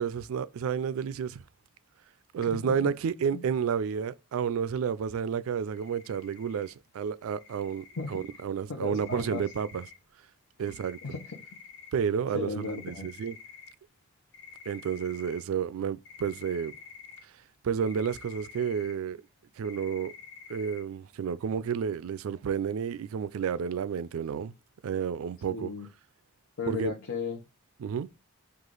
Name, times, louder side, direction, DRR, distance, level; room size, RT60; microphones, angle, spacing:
voice 1, 0.0-1.4 2.3-9.8 10.6-11.0 11.9-13.4 14.7-16.8 17.6-19.2 19.6-20.1 20.5-24.5 24.8-25.7 26.7-26.9 27.8-28.1, right 7 dB, 75° right, 0.3 m, -31 dB
voice 2, 2.4-2.9 3.3-3.4 8.0-8.2 8.7-9.4 11.0-11.4 12.3-13.1 25.5-25.9 26.6-27.5, left 4 dB, 70° left, 0.8 m, -35 dB
sound 1, 5.7-6.7 7.4-8.4 9.0-9.9 10.7-11.9 12.6-13.7 14.3-15.4 16.1-17.2 17.8-18.9 19.3-19.4 19.6-20.8, left 6 dB, 50° left, 1.1 m, -49 dB
4.9 x 2.4 x 3.8 m
head